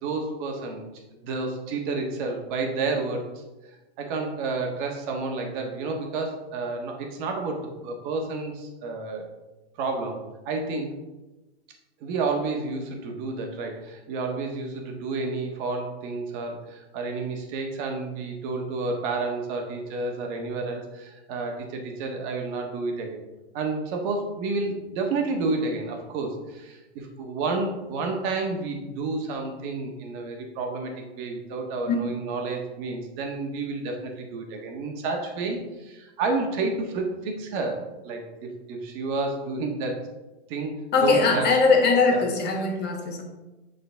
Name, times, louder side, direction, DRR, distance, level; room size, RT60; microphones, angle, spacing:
voice 1, 0.0-0.8 1.2-3.3 4.0-9.3 9.8-10.9 12.0-23.2 23.5-40.0 40.5-41.5 42.1-42.2, right 3 dB, 45° right, 2 dB, 1.5 m, -30 dB
voice 2, 40.9-43.2, left 4 dB, 30° left, 2 dB, 1.4 m, -21 dB
11.0 x 4.1 x 3.5 m, 1.1 s
hypercardioid pair, 115°, 34 cm